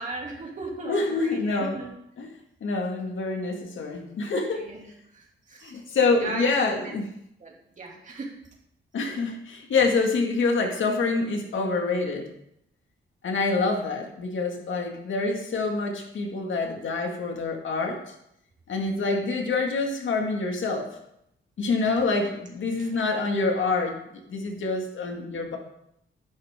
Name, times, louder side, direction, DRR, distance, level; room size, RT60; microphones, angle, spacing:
voice 1, 0.0-1.9 4.5-5.9 6.2-7.0 7.4-8.3 22.8-22.9, right 3 dB, 40° right, -1 dB, 2.8 m, -38 dB
voice 2, 0.8-1.8 2.2-2.3 2.6-4.6 5.6-7.1 8.9-12.3 13.2-18.0 18.7-20.9 21.6-24.0 24.3-25.6, left 3 dB, 70° left, 2 dB, 2.1 m, -26 dB
13.5 x 11.0 x 3.7 m, 0.77 s
wide cardioid pair, 170°, 21 cm